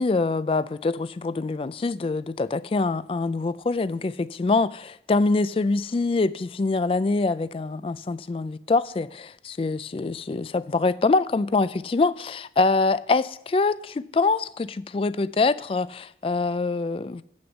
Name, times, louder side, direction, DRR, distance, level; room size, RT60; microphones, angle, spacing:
voice 1, 0.0-17.2, left 3 dB, 30° left, 0.3 m, -24 dB
7.8 x 6.3 x 7.1 m
head